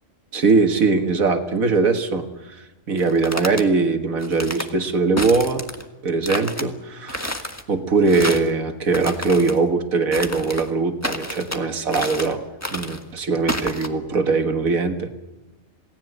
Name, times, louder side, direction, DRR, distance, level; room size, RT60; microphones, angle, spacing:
voice 1, 0.3-5.6 6.0-12.4 12.7-15.1, right 4 dB, 90° right, 6 dB, 2.0 m, -21 dB
sound 1, 3.0-3.6 4.2-4.7 5.2-5.8 6.2-6.7 7.1-7.6 8.1-8.5 8.9-9.6 10.1-10.7 11.0-11.6 11.9-12.3 12.6-13.0 13.5-13.9, left 1 dB, 10° left, 1.6 m, -30 dB
28.0 x 18.5 x 8.0 m, 1.1 s
omnidirectional pair, 1.4 m